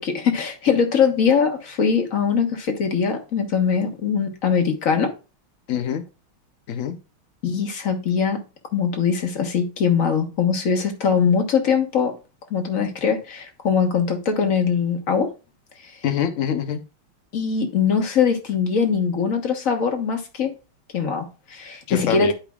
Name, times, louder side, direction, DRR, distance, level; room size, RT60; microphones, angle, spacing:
voice 1, 0.0-5.1 7.4-8.4 8.7-12.1 12.5-15.3 15.9-16.0 17.3-20.5 20.9-22.3, left 6 dB, 45° left, 1.5 m, -22 dB
voice 2, 5.7-6.0 6.7-7.0 16.0-16.8 21.9-22.3, left 8 dB, 80° left, 0.6 m, -24 dB
11.5 x 5.0 x 2.4 m
omnidirectional pair, 2.3 m